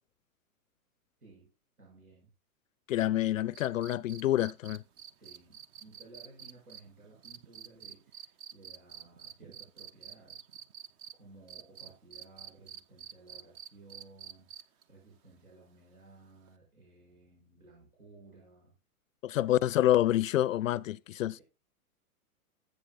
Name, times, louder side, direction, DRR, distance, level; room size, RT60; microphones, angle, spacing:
voice 1, 1.2-1.5 1.8-2.3 5.1-10.5 11.1-18.7 21.3-21.4, right 3 dB, 70° right, 6.3 m, -57 dB
voice 2, 2.9-4.8 19.2-21.4, left 13 dB, 60° left, 0.5 m, -27 dB
sound 1, 3.5-11.1 11.5-14.8 16.5-16.6, right 9 dB, 25° right, 0.6 m, -48 dB
14.5 x 7.8 x 2.2 m
figure-of-eight pair, 110°, 44 cm